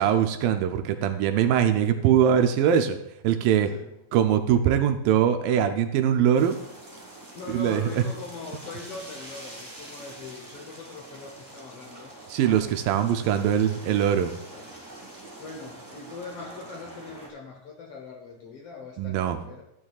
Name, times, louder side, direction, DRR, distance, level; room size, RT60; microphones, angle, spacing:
voice 1, 0.0-3.0 3.2-3.7 4.1-6.6 7.5-8.0 12.3-14.3 19.0-19.4, right 9 dB, 80° right, 7 dB, 2.3 m, -22 dB
sound 1, 6.3-17.3, right 1 dB, 30° right, 0.3 m, -45 dB
voice 2, 7.3-12.1 12.9-13.2 14.5-14.6 15.4-19.6, left 4 dB, 90° left, 1 dB, 1.2 m, -41 dB
14.0 x 8.7 x 2.4 m, 0.82 s
omnidirectional pair, 4.1 m